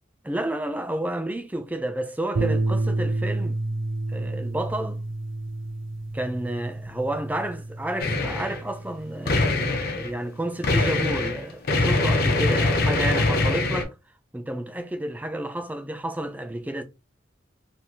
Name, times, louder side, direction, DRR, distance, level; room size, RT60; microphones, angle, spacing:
voice 1, 0.2-3.6 4.1-5.1 6.1-14.0 14.3-16.8, right 1 dB, 10° right, 0.3 m, -31 dB
sound 1, 2.3-10.7, right 2 dB, 85° right, 0.7 m, -30 dB
sound 2, 8.0-8.6 9.3-10.1 10.6-13.8, left 2 dB, 50° left, 0.6 m, -23 dB
3.5 x 2.3 x 2.8 m
head